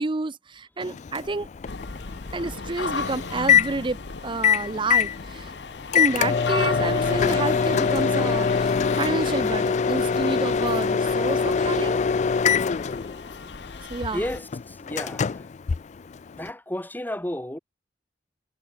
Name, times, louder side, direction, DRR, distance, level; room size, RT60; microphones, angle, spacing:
voice 1, 0.0-1.5 2.3-5.5 5.9-12.0 13.9-14.2, right 3 dB, 30° right, 0.6 m, -29 dB
Microwave oven, 0.8-16.5, left 6 dB, 40° left, 0.4 m, -24 dB
sound 1, 1.7-14.4, left 4 dB, 75° left, 1.2 m, -36 dB
voice 2, 14.1-15.4 16.4-17.6, left 1 dB, 10° left, 1.8 m, -32 dB
head